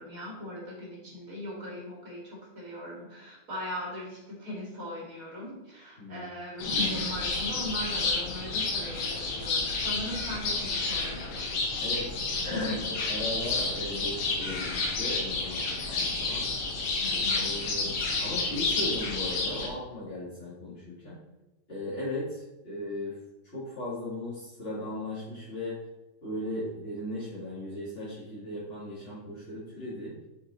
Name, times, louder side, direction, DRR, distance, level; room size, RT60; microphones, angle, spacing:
voice 1, 0.0-11.5 12.4-12.7 17.0-17.5, left 1 dB, 25° right, -4 dB, 2.6 m, -38 dB
sound 1, 6.6-19.7, left 3 dB, 75° left, 3.2 m, -30 dB
voice 2, 11.8-12.1 12.4-12.8 13.1-16.5 17.1-21.2 21.7-23.2 23.4-25.8 26.2-30.1, left 1 dB, 20° left, -11 dB, 2.3 m, -37 dB
7.1 x 6.7 x 4.3 m, 0.99 s
omnidirectional pair, 4.1 m